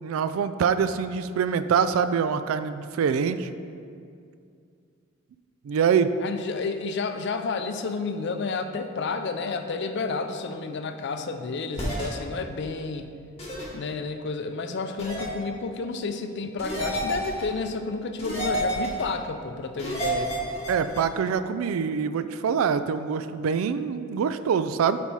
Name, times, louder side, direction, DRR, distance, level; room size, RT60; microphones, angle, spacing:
voice 1, 0.0-3.5 5.6-6.1 20.7-25.0, right 6 dB, 80° right, 12 dB, 0.3 m, -25 dB
voice 2, 6.2-13.1 13.7-20.3, left 4 dB, 55° left, 7 dB, 0.4 m, -31 dB
sound 1, 11.8-12.0 13.4-13.6 15.0-15.3 16.6-17.4 18.2-19.0 19.8-21.0, right 1 dB, 30° left, 1.7 m, -29 dB
7.2 x 4.2 x 4.6 m, 2.4 s
head